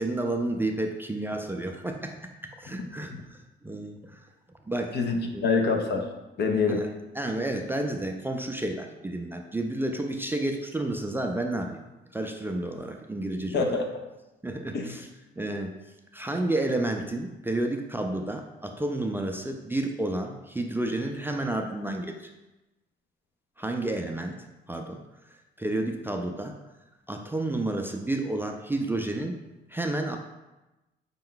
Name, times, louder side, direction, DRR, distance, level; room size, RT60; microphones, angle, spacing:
voice 1, 0.0-2.1 2.4-4.2 4.7-4.9 5.3-5.5 6.7-11.8 12.1-13.8 14.4-15.1 15.4-15.7 16.1-22.3 23.6-24.4 24.7-25.0 25.6-26.5 27.1-29.4 29.7-30.2, right 1 dB, 10° right, 3 dB, 0.3 m, -31 dB
voice 2, 4.9-6.1 6.4-6.8 13.5-13.8 14.7-15.0, left 4 dB, 60° left, 3 dB, 0.7 m, -25 dB
5.2 x 2.2 x 3.8 m, 1.0 s
cardioid pair, 90°, 20 cm